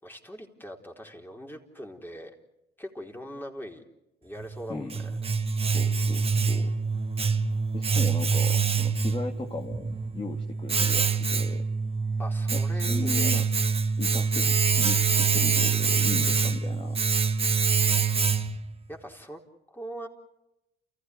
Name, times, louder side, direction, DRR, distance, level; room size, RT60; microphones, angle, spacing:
voice 1, 0.0-2.3 2.8-3.8 4.2-4.9 12.2-13.3 18.9-19.4 19.7-20.1, equal, 10° left, 2 dB, 4.2 m, -41 dB
Domestic sounds home sounds, 4.4-18.7, right 5 dB, 25° right, 1.5 m, -25 dB
voice 2, 4.7-5.1 5.6-6.7 7.7-11.6 12.5-13.5 14.0-17.0 17.3-17.5, left 3 dB, 25° left, 3 dB, 2.1 m, -37 dB
29.0 x 15.5 x 9.7 m, 0.95 s
supercardioid pair, 70°, 21 cm